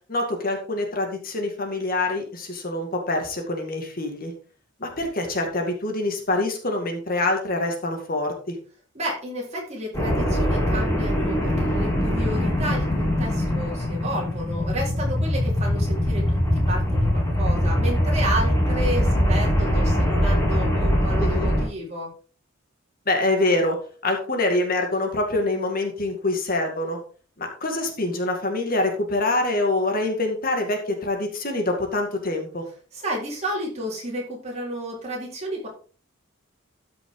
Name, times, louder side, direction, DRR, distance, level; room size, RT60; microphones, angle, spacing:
voice 1, 0.1-4.3 4.8-8.6 21.2-21.5 23.1-23.8 24.0-27.0 27.4-32.6, left 2 dB, 45° left, 3 dB, 2.1 m, -25 dB
voice 2, 8.9-22.1 32.9-35.7, right 1 dB, 35° right, -3 dB, 4.1 m, -31 dB
sound 1, 9.9-21.6, equal, 15° left, 4.5 m, -22 dB
13.5 x 6.0 x 3.8 m, 0.40 s
head